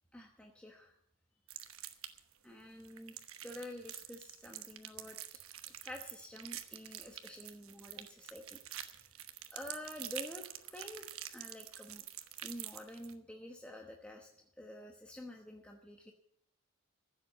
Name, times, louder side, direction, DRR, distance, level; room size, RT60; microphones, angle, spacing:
voice 1, 0.1-1.0 2.4-3.2 3.4-5.2 5.6-8.6 9.5-10.4 10.7-11.0 11.3-12.0 12.4-14.3 14.6-16.1, left 1 dB, 5° left, 1 dB, 1.0 m, -48 dB
sound 1, 1.5-2.3 2.8-13.1, right 12 dB, 75° right, 1.1 m, -47 dB
15.0 x 7.7 x 8.3 m, 0.69 s
head